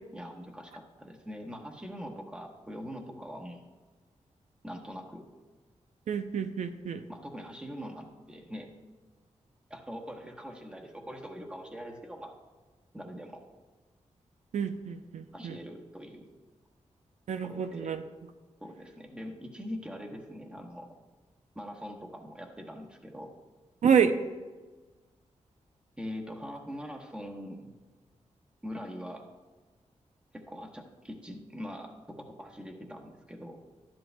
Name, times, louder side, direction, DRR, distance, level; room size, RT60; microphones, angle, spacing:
voice 1, 0.1-3.6 4.6-5.3 7.1-8.7 9.7-12.3 12.9-13.4 15.3-16.3 17.4-17.9 18.6-21.0 21.5-23.3 26.0-27.7 28.6-29.3 30.3-33.6, equal, 10° right, 1 dB, 1.0 m, -42 dB
voice 2, 6.1-7.0 14.5-15.6 17.3-18.0 23.8-24.2, right 7 dB, 80° right, 8 dB, 0.5 m, -28 dB
12.5 x 10.5 x 2.2 m, 1.3 s
wide cardioid pair, 165°, 12 cm